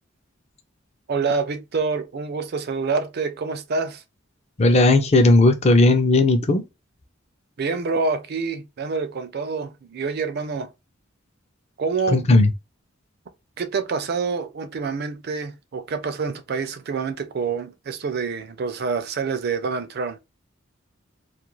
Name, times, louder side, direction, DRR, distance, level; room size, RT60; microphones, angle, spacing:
voice 1, 1.1-4.0 7.6-10.7 11.8-12.2 13.6-20.2, right 4 dB, 50° right, 0.4 m, -27 dB
voice 2, 4.6-6.6 12.1-12.5, left 2 dB, 30° left, 0.5 m, -16 dB
2.4 x 2.2 x 3.0 m
head